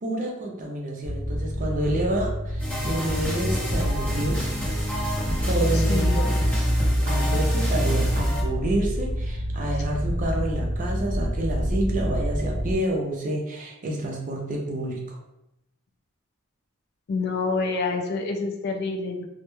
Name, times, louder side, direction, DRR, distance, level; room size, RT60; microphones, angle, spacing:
voice 1, 0.0-4.5 5.5-6.3 7.1-15.2, right 1 dB, 40° right, 0 dB, 0.5 m, -28 dB
sound 1, 1.0-12.7, equal, 75° left, 0.7 m, -27 dB
sound 2, 2.6-8.4, equal, 10° left, 0.8 m, -28 dB
voice 2, 5.7-6.2 17.1-19.3, left 4 dB, 50° left, 4 dB, 0.3 m, -27 dB
2.2 x 2.0 x 3.0 m, 0.86 s
head